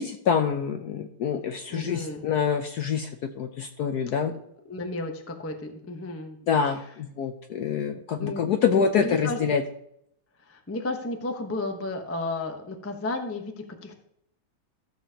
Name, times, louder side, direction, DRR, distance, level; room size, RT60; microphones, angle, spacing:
voice 1, 0.0-3.1 3.4-4.3 6.5-9.6, left 7 dB, 70° left, 6 dB, 1.0 m, -26 dB
voice 2, 1.7-2.2 4.3-4.4 4.7-6.4 6.7-6.8 8.2-9.4 10.4-14.0, left 2 dB, 15° left, 4 dB, 0.4 m, -33 dB
14.0 x 7.0 x 2.9 m, 0.73 s
omnidirectional pair, 2.3 m